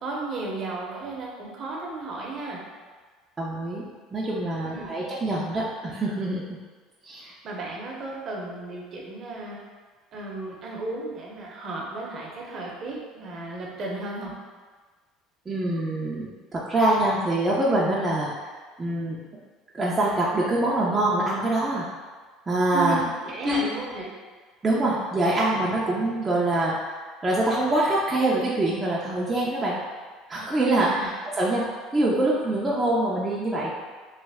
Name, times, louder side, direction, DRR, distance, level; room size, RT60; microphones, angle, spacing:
voice 1, 0.0-2.6 4.6-4.9 7.2-9.6 10.1-14.3 22.7-24.1 30.7-31.1, right 3 dB, 45° right, -2 dB, 0.8 m, -34 dB
voice 2, 3.4-3.8 4.1-6.4 7.0-7.2 15.5-18.5 18.8-19.2 19.7-21.9 22.5-23.0 23.4-23.7 24.6-27.0 27.2-29.8 30.3-31.6 31.9-33.7, right 1 dB, 20° right, -6 dB, 0.5 m, -24 dB
3.1 x 2.1 x 3.4 m, 1.5 s
supercardioid pair, 105°, 0 cm